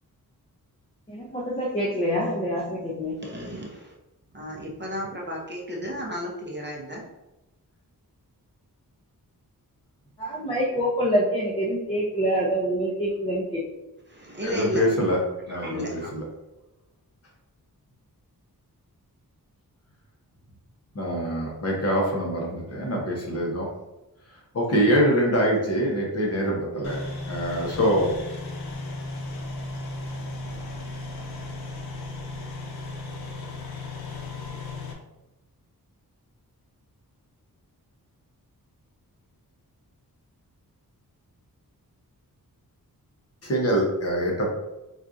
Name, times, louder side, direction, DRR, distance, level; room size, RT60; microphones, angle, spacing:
voice 1, 1.1-3.2 10.2-13.6, equal, 15° left, -4 dB, 0.5 m, -26 dB
voice 2, 3.2-3.9 4.3-7.1 14.1-14.9 15.6-16.1, equal, 30° right, -2 dB, 0.6 m, -33 dB
voice 3, 14.4-15.2 15.5-16.2 20.9-23.7 24.5-27.0 27.3-28.1 43.4-44.6, equal, 40° left, -2 dB, 0.9 m, -24 dB
sound 1, 26.8-34.9, left 2 dB, 80° left, 0.7 m, -35 dB
4.3 x 2.4 x 2.5 m, 0.97 s
wide cardioid pair, 140°, 36 cm